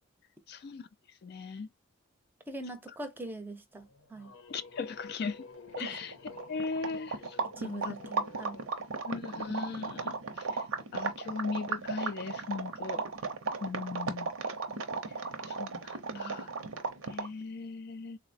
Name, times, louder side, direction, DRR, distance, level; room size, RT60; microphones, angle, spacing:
voice 1, 0.5-0.9 1.2-1.7 4.5-5.4 5.8-6.1 6.5-7.9 9.1-10.5 10.9-13.0 13.6-14.3 15.4-16.5 17.1-18.2, left 4 dB, 50° left, 0.3 m, -38 dB
voice 2, 2.5-4.3 5.8-6.0 7.6-8.6 16.1-16.5, right 2 dB, 10° right, 0.6 m, -42 dB
sound 1, 3.8-8.7, left 3 dB, 80° left, 0.7 m, -51 dB
sound 2, 5.4-5.5 5.7-17.4, right 4 dB, 80° right, 0.7 m, -36 dB
3.8 x 2.1 x 2.5 m
head